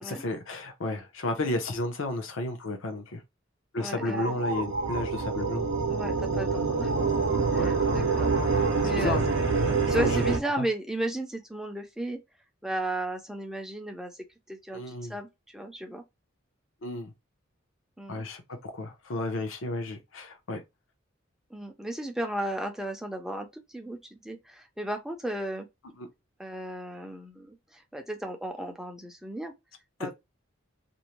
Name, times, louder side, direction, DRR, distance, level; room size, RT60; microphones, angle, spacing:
voice 1, 0.0-3.2 3.7-5.7 7.5-7.7 9.0-9.2 9.9-10.2 10.6-10.7 14.7-15.2 16.8-17.1 18.1-20.6 26.0-26.1, left 2 dB, 75° left, 0.7 m, -32 dB
voice 2, 3.8-4.4 5.9-7.2 7.5-12.2 12.6-14.2 14.5-16.0 18.0-18.2 21.5-25.7 26.4-29.5 30.0-30.1, right 1 dB, ahead, 0.4 m, -35 dB
sound 1, 3.8-10.4, right 4 dB, 60° right, 0.6 m, -26 dB
2.6 x 2.1 x 2.9 m
head